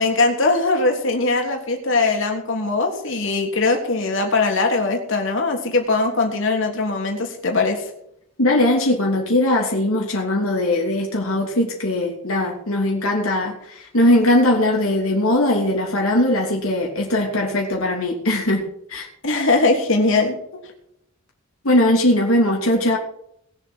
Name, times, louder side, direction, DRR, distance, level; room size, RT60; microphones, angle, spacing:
voice 1, 0.0-7.8 19.2-20.4, left 3 dB, 60° left, 1 dB, 3.4 m, -20 dB
voice 2, 8.4-19.1 21.6-23.0, left 1 dB, 80° left, -1 dB, 3.0 m, -20 dB
20.0 x 7.6 x 6.4 m, 0.74 s
head